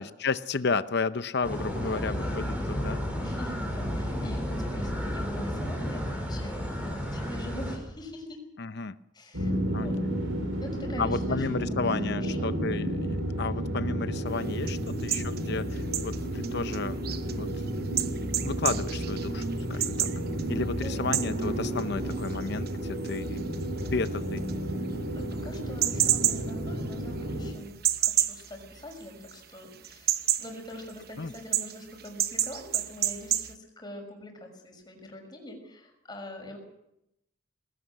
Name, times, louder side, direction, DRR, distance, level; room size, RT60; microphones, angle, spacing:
voice 1, 0.0-3.0 4.2-4.4 8.6-9.0 9.7-9.9 11.0-17.0 17.3-17.5 18.4-20.1 20.5-23.4 23.9-24.4 31.2-31.3, left 4 dB, 55° left, 13 dB, 0.7 m, -32 dB
sound 1, 1.4-7.8, equal, 10° right, 5.6 m, -32 dB
voice 2, 1.7-2.4 3.2-8.4 9.1-9.9 10.6-11.5 11.7-12.5 20.7-21.3 25.1-30.1 30.4-36.6, left 1 dB, 20° left, 3 dB, 6.3 m, -44 dB
sound 2, 9.3-27.5, right 1 dB, 85° right, 6.1 m, -32 dB
sound 3, 14.3-29.4 29.7-33.5, right 11 dB, 50° right, 1.0 m, -32 dB
20.5 x 18.0 x 7.7 m, 0.84 s
head